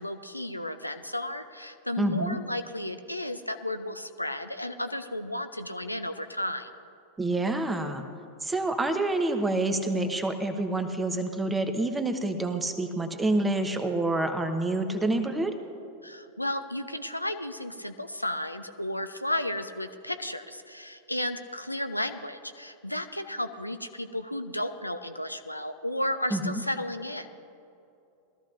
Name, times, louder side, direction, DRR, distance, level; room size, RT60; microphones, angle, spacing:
voice 1, 0.0-6.7 16.0-27.3, left 1 dB, 85° left, 8 dB, 0.5 m, -33 dB
voice 2, 2.0-2.4 7.2-8.0 8.4-15.5 26.3-26.6, right 2 dB, 10° right, 6 dB, 1.0 m, -27 dB
20.5 x 14.0 x 2.6 m, 2.8 s
figure-of-eight pair, 90°, 0 cm